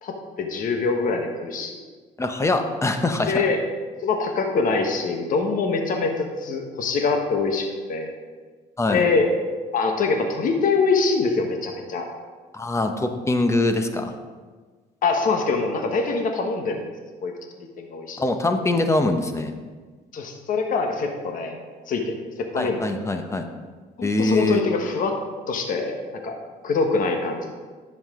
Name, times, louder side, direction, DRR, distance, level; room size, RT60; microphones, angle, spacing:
voice 1, 0.0-1.8 3.3-3.6 4.0-8.1 8.9-9.3 9.7-12.1 15.0-16.8 17.2-17.3 17.8-18.2 20.1-21.6 21.9-22.8 24.0-25.1 25.5-26.0 26.2-26.3 26.6-27.5, left 4 dB, 55° left, 4 dB, 1.2 m, -24 dB
voice 2, 2.2-3.5 8.8-9.0 12.5-14.1 18.2-19.5 22.5-23.5 24.0-24.6, left 2 dB, 15° left, 6 dB, 0.8 m, -23 dB
10.5 x 7.4 x 3.7 m, 1.4 s
cardioid pair, 110°, 17 cm